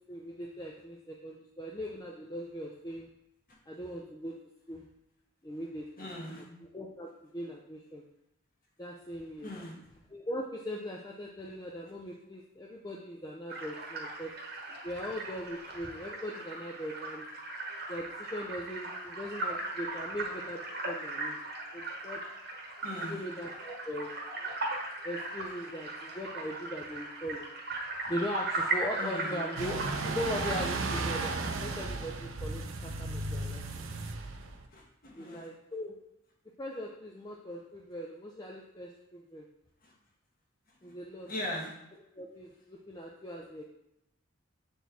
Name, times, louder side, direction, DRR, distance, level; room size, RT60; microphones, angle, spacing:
voice 1, 0.1-3.1 3.7-4.3 4.7-4.8 5.4-8.0 8.8-9.5 10.1-14.3 14.8-17.3 17.9-21.4 21.7-22.2 23.0-24.2 25.0-27.5 28.1-34.0 35.2-35.9 36.6-39.5 40.8-41.3 41.9-43.6, equal, 20° left, -2 dB, 0.5 m, -40 dB
voice 2, 6.0-6.4 9.4-9.8 22.8-23.2 29.0-29.4 34.7-35.5 39.8-39.9 41.3-41.7, left 1 dB, 40° left, -1 dB, 1.3 m, -39 dB
sound 1, 13.5-30.6, right 2 dB, 45° right, 1.1 m, -38 dB
sound 2, 29.6-34.6, right 3 dB, 65° right, 0.6 m, -34 dB
7.4 x 4.4 x 3.5 m, 0.82 s
head